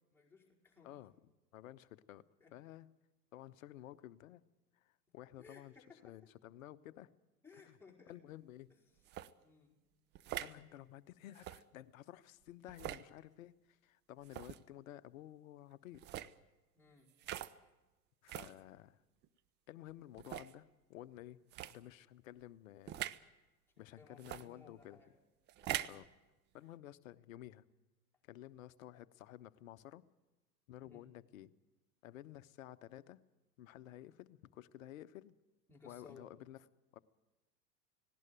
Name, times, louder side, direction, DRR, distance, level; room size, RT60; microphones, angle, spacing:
voice 1, 0.1-1.0 2.4-2.5 5.4-6.0 7.4-8.1 9.4-9.8 16.7-17.1 23.7-25.1 25.6-25.9 30.8-31.0 35.7-36.2, left 4 dB, 5° left, -2 dB, 5.0 m, -60 dB
voice 2, 0.8-2.2 2.5-2.9 3.3-4.4 4.7-5.8 6.0-7.1 7.6-7.8 8.1-8.7 10.4-16.3 18.2-19.0 19.7-21.4 21.7-23.1 23.8-25.0 25.8-26.1 26.5-27.6 28.2-30.0 30.7-31.5 32.0-33.2 33.6-35.3 35.8-36.7 36.9-37.0, left 13 dB, 55° left, 15 dB, 1.0 m, -53 dB
sound 1, 9.1-9.3 10.2-10.6 11.3-11.6 12.7-13.1 14.2-14.6 15.9-16.3 17.2-17.5 18.3-18.5 19.2-19.3 20.2-20.5 21.5-21.7 22.9-23.2 24.2-24.4 25.5-26.0, right 13 dB, 20° right, 0.6 m, -43 dB
18.5 x 17.5 x 9.1 m, 1.1 s
figure-of-eight pair, 90°, 49 cm